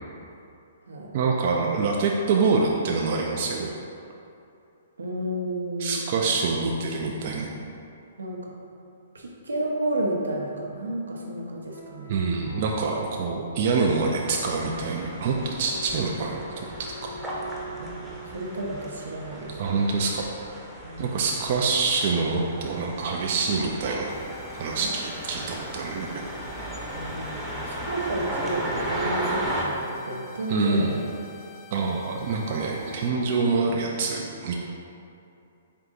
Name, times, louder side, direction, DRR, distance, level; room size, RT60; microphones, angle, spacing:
voice 1, 1.1-3.7 5.8-7.5 12.1-16.7 19.6-20.2 21.0-24.2 24.6-26.3 30.5-30.9 31.7-34.5, right 4 dB, 50° right, -1 dB, 0.4 m, -26 dB
voice 2, 5.0-6.0 8.2-8.5 9.1-12.2 17.8-18.0 18.3-19.6 20.8-21.2 24.8-24.9 26.9-31.0, right 1 dB, 85° right, -1 dB, 0.7 m, -31 dB
sound 1, 11.5-18.5, equal, 80° left, 0.6 m, -44 dB
sound 2, 14.0-29.6, right 1 dB, 10° right, 0.7 m, -36 dB
sound 3, 24.1-33.1, left 3 dB, 35° left, 0.4 m, -49 dB
4.5 x 2.6 x 3.8 m, 2.6 s
hypercardioid pair, 130°, 0 cm